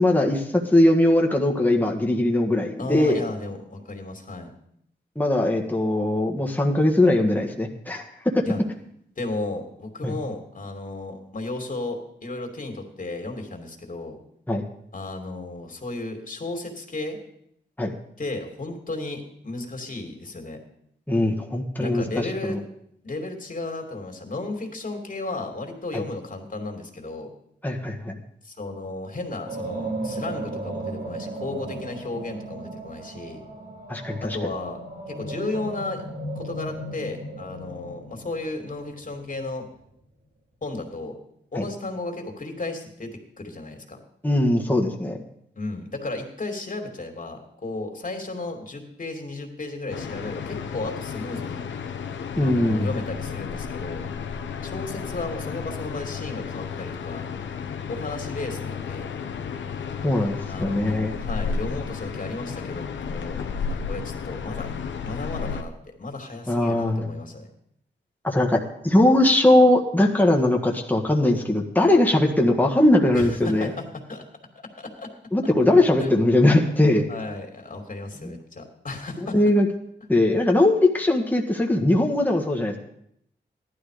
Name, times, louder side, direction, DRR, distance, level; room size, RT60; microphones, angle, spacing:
voice 1, 0.0-3.2 5.2-8.1 8.3-8.5 10.0-10.1 14.5-14.6 17.8-17.9 21.1-22.6 25.9-26.0 27.6-28.2 33.9-34.4 41.6-41.7 44.2-45.2 52.4-52.9 60.0-61.1 66.5-67.1 68.2-73.7 75.3-77.0 79.3-79.7 80.1-82.8, left 1 dB, 10° left, 1 dB, 1.7 m, -20 dB
voice 2, 2.8-4.5 8.4-8.6 9.2-14.2 14.9-17.2 18.2-20.6 21.8-22.6 23.0-27.3 28.4-33.4 34.2-34.8 35.1-36.0 36.3-39.7 40.6-41.2 41.5-44.0 45.6-51.6 52.4-54.0 54.6-57.3 57.9-59.1 60.5-63.4 63.7-64.7 65.0-65.7 66.0-67.5 73.1-74.2 74.8-75.1 76.0-76.2 77.1-79.4, left 2 dB, 45° left, 4 dB, 2.8 m, -34 dB
sound 1, 29.4-39.6, right 2 dB, 55° right, 3.9 m, -36 dB
sound 2, 49.9-65.6, left 6 dB, 85° left, 1.1 m, -33 dB
15.0 x 11.5 x 5.1 m, 0.72 s
cardioid pair, 65°, 19 cm